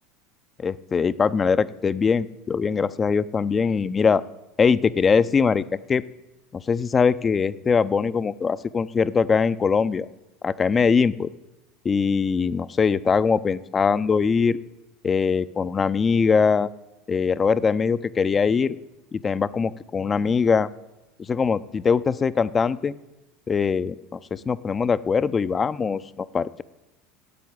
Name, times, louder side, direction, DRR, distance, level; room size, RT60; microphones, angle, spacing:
voice 1, 0.6-4.2 4.6-6.0 6.5-10.1 10.4-11.3 11.8-14.6 15.0-16.7 17.1-18.8 19.1-20.7 21.3-22.9 23.5-26.6, left 5 dB, 30° left, 15 dB, 0.6 m, -22 dB
12.0 x 8.4 x 9.7 m, 0.99 s
hypercardioid pair, 85°, 0 cm